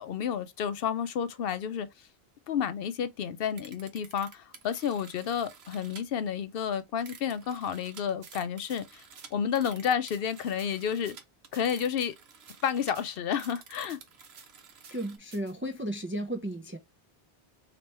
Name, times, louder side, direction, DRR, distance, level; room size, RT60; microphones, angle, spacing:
voice 1, 0.0-2.1 2.5-9.0 9.3-11.2 11.5-12.2 12.6-14.0, left 8 dB, 70° left, 0.7 m, -31 dB
sound 1, 3.5-6.0 6.8-15.2, right 6 dB, 90° right, 1.1 m, -51 dB
sound 2, 8.2-8.3 8.7-8.8 9.2-9.3 9.6-9.7 10.1-10.7 11.1-11.2 11.5-12.1 12.5-12.6 12.9-13.1 13.4-13.5 13.9-14.5 14.8-14.9 15.3-15.5, right 6 dB, 70° right, 1.0 m, -52 dB
voice 2, 14.9-16.8, right 1 dB, 20° right, 0.4 m, -34 dB
3.3 x 3.0 x 4.2 m
omnidirectional pair, 1.0 m